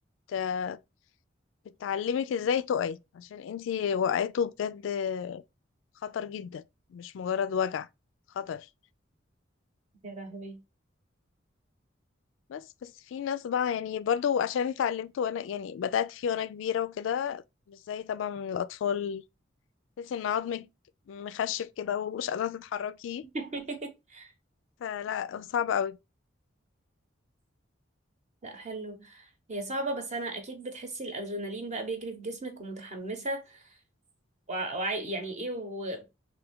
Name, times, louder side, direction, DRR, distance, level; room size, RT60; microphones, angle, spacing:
voice 1, 0.3-0.8 1.8-5.4 6.0-6.6 6.9-7.9 8.4-8.7 12.5-17.4 17.7-19.2 20.0-20.7 21.1-23.2 24.8-26.0, left 8 dB, 80° left, 0.3 m, -31 dB
voice 2, 10.0-10.6 23.3-24.3 28.4-33.8 34.5-36.1, right 2 dB, 40° right, 0.9 m, -36 dB
3.4 x 2.7 x 3.5 m
head